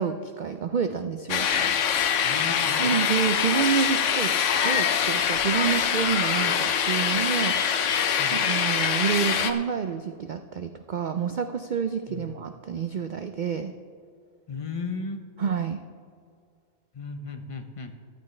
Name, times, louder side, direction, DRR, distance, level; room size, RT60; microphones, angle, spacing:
voice 1, 0.0-1.5 2.8-4.3 4.6-7.6 8.3-13.7 15.4-15.8, right 7 dB, 85° right, 8 dB, 0.4 m, -28 dB
sound 1, 1.3-9.5, left 7 dB, 65° left, 1.0 m, -24 dB
voice 2, 2.2-2.9 8.2-8.4 12.1-12.4 14.5-15.2 16.9-17.9, left 4 dB, 30° left, 6 dB, 0.7 m, -35 dB
14.5 x 12.0 x 3.2 m, 2.2 s
omnidirectional pair, 1.4 m